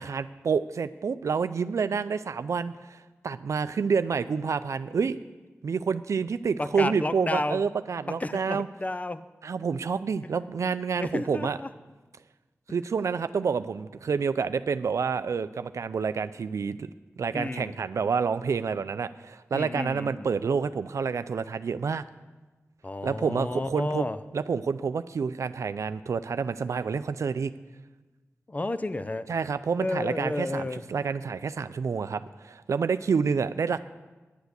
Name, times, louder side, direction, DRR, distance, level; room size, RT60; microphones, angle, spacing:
voice 1, 0.0-5.2 5.6-8.7 9.4-11.6 12.7-16.9 17.2-22.0 23.0-24.1 24.3-27.5 29.3-33.8, right 5 dB, 80° right, 12 dB, 0.4 m, -28 dB
voice 2, 6.6-7.6 8.1-9.2 11.0-11.7 17.3-17.8 19.5-20.3 22.8-24.2 28.5-29.3 29.8-30.8, left 2 dB, 30° left, 13 dB, 0.6 m, -31 dB
10.5 x 8.1 x 8.0 m, 1.2 s
wide cardioid pair, 60°, 5 cm